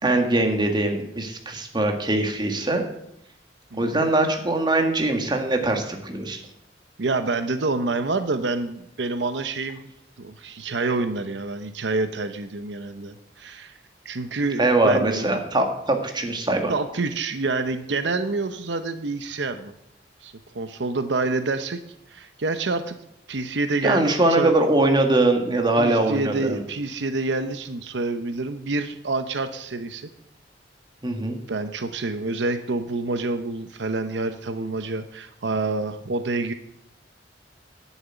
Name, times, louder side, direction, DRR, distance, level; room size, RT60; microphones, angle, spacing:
voice 1, 0.0-2.8 3.8-6.4 14.6-16.7 23.8-26.6 31.0-31.4, right 2 dB, 25° right, 4 dB, 1.9 m, -22 dB
voice 2, 7.0-9.9 10.2-13.8 14.0-15.3 16.7-19.7 20.2-21.8 22.1-22.9 23.3-24.5 25.8-30.1 31.5-36.5, right 3 dB, 75° right, 9 dB, 0.8 m, -27 dB
10.5 x 7.2 x 9.1 m, 0.78 s
head